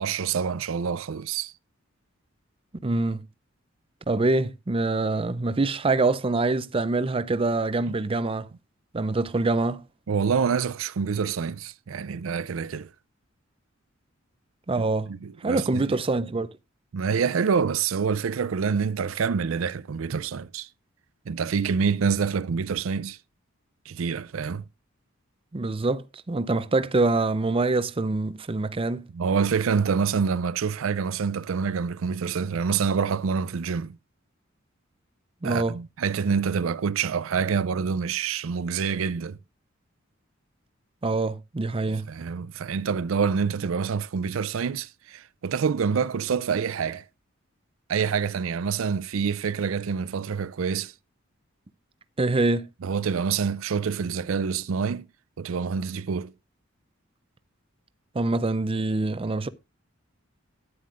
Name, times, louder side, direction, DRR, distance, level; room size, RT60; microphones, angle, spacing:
voice 1, 0.0-1.5 10.1-12.9 15.1-16.0 16.9-20.7 21.3-23.2 23.9-24.6 29.1-34.0 35.4-39.4 41.9-47.0 47.9-50.9 52.8-55.0 55.4-56.3, right 6 dB, 80° right, 0.5 m, -26 dB
voice 2, 2.8-3.3 4.1-8.5 8.9-9.8 14.7-15.1 15.4-16.5 25.5-29.1 35.4-35.8 41.0-42.1 52.2-52.6 58.1-59.5, right 3 dB, 25° right, 0.5 m, -25 dB
13.0 x 9.4 x 2.5 m
head